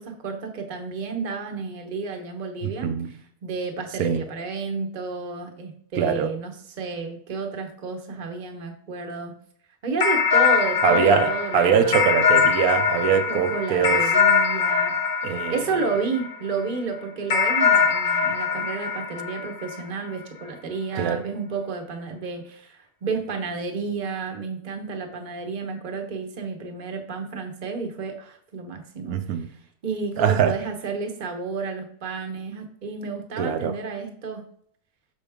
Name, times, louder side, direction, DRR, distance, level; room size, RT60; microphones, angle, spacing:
voice 1, 0.0-6.5 6.8-9.3 9.8-12.0 13.3-15.0 15.5-29.4 29.8-34.4, right 4 dB, 35° right, 4 dB, 0.9 m, -31 dB
voice 2, 2.6-3.1 4.0-4.2 6.0-6.3 10.8-14.0 15.2-15.8 20.9-21.2 29.1-29.5 30.2-30.6 33.4-33.8, right 7 dB, 70° right, 9 dB, 1.0 m, -22 dB
sound 1, 10.0-16.6 17.3-20.1, left 6 dB, 40° left, 0.8 m, -22 dB
6.3 x 5.1 x 3.5 m, 0.62 s
omnidirectional pair, 1.7 m